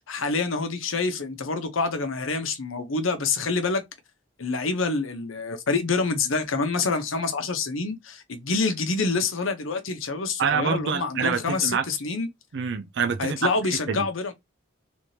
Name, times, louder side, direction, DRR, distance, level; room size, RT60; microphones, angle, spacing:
voice 1, 0.1-3.8 4.4-12.3 13.2-14.3, left 4 dB, 90° left, 0.9 m, -27 dB
voice 2, 10.4-11.8 12.5-13.5 13.9-14.1, right 6 dB, 60° right, 0.4 m, -26 dB
3.4 x 2.8 x 3.1 m
head